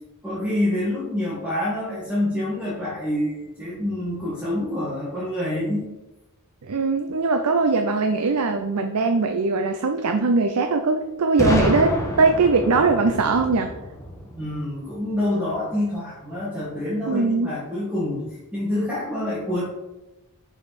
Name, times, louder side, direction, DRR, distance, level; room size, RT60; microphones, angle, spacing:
voice 1, 0.2-5.8 14.3-18.2 18.5-19.6, left 1 dB, 5° right, -9 dB, 1.6 m, -26 dB
voice 2, 6.6-13.7 17.1-17.5, right 3 dB, 80° right, 6 dB, 0.6 m, -21 dB
Boom, 11.4-15.2, equal, 15° left, 1.0 m, -28 dB
6.6 x 5.7 x 4.2 m, 1.0 s
head